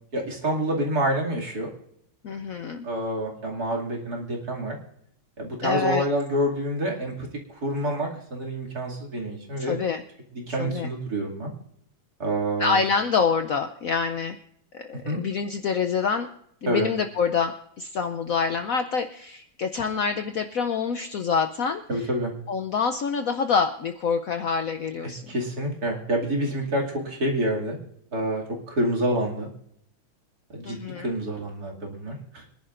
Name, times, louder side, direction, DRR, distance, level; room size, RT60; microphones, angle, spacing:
voice 1, 0.1-1.7 2.8-4.8 5.4-9.8 10.3-11.5 12.2-12.8 15.0-15.2 16.7-16.9 21.9-22.3 25.0-27.8 28.1-29.5 30.5-32.5, right 1 dB, 45° right, -1 dB, 2.9 m, -27 dB
voice 2, 2.2-2.9 5.6-6.1 9.6-10.0 10.6-10.9 12.6-14.4 14.7-16.3 16.6-22.1 22.5-25.3 30.6-31.1, left 5 dB, 90° left, 7 dB, 0.7 m, -26 dB
24.5 x 11.0 x 2.5 m, 0.70 s
omnidirectional pair, 2.3 m